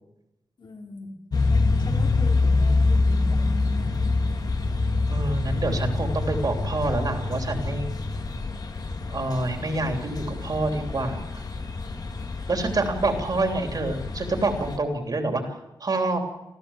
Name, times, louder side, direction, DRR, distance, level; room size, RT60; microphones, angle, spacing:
voice 1, 0.6-1.1 1.5-3.5, left 2 dB, 70° left, 0 dB, 4.0 m, -41 dB
sound 1, 1.3-14.8, left 3 dB, 50° left, 1.9 m, -26 dB
voice 2, 5.1-8.0 9.1-11.4 12.5-16.2, right 2 dB, 50° right, 4 dB, 3.4 m, -27 dB
27.0 x 14.5 x 7.4 m, 0.94 s
wide cardioid pair, 95°, 8 cm